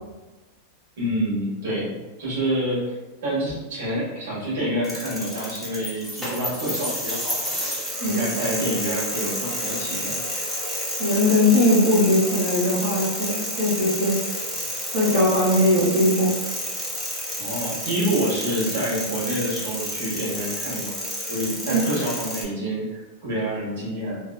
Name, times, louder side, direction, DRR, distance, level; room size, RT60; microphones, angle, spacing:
voice 1, 1.0-2.9 3.2-7.5 8.0-10.2 17.4-21.0 21.3-24.2, right 1 dB, 80° right, -6 dB, 1.5 m, -27 dB
sound 1, 4.8-22.4, equal, 5° right, 0.5 m, -30 dB
voice 2, 11.0-14.2 14.9-16.3 21.6-21.8, left 1 dB, 60° right, -10 dB, 1.2 m, -20 dB
3.2 x 2.3 x 2.2 m, 1.1 s
supercardioid pair, 165°, 0 cm